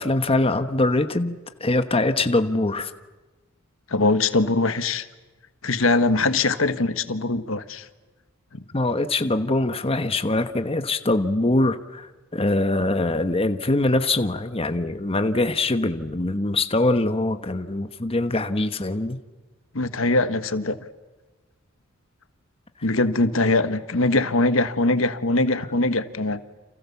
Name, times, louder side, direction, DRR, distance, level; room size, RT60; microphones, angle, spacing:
voice 1, 0.0-2.9 8.7-19.2, left 2 dB, 30° left, 9 dB, 1.2 m, -23 dB
voice 2, 3.9-5.0 5.6-7.8 19.7-20.8 22.8-26.4, left 2 dB, 75° left, 11 dB, 1.5 m, -22 dB
30.0 x 28.0 x 7.1 m, 1.2 s
head